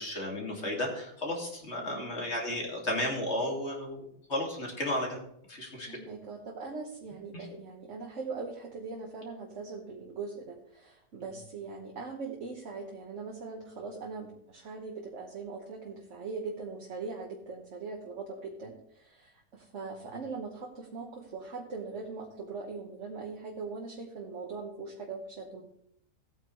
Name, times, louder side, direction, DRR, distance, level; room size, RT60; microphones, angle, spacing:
voice 1, 0.0-5.2 5.5-6.0, left 1 dB, 40° left, 0 dB, 2.5 m, -33 dB
voice 2, 5.8-25.6, right 4 dB, 45° right, 1 dB, 1.5 m, -41 dB
16.5 x 8.9 x 3.2 m, 0.72 s
omnidirectional pair, 1.9 m